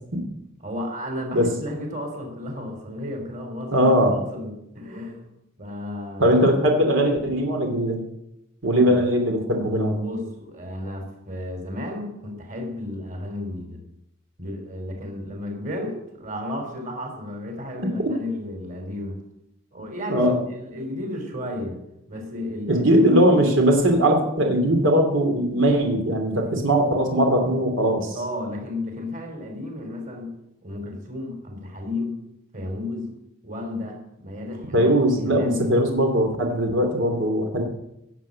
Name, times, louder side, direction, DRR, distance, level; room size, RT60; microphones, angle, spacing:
voice 1, 0.6-5.3 5.6-6.3 8.7-9.0 10.0-13.8 14.4-19.2 19.7-21.8 22.1-23.1 28.2-30.3 30.6-32.2 32.5-33.1 33.4-34.9 35.3-35.7, left 1 dB, 45° right, 3 dB, 3.7 m, -33 dB
voice 2, 3.7-4.2 6.2-8.0 8.6-10.1 20.1-20.4 22.7-28.2 34.7-37.6, equal, 85° right, 3 dB, 2.7 m, -20 dB
16.5 x 7.7 x 8.5 m, 0.84 s
head